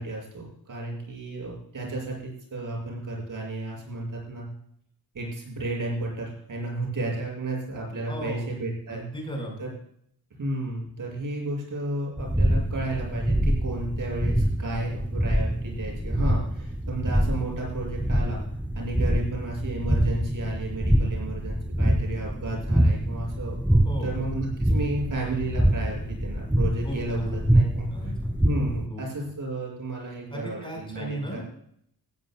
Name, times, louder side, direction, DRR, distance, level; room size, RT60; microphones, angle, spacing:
voice 1, 0.0-4.5 5.1-9.0 9.6-9.7 10.4-18.4 18.7-28.1 28.4-31.4, right 2 dB, 55° right, -1 dB, 7.0 m, -33 dB
voice 2, 8.1-8.5 8.9-9.6 23.8-24.1 26.8-27.5 27.9-28.4 28.9-29.0 30.3-31.4, right 1 dB, 15° left, -1 dB, 5.7 m, -35 dB
sound 1, 12.2-28.9, equal, 5° right, 0.6 m, -25 dB
18.0 x 16.0 x 2.4 m, 0.68 s
wide cardioid pair, 165°, 38 cm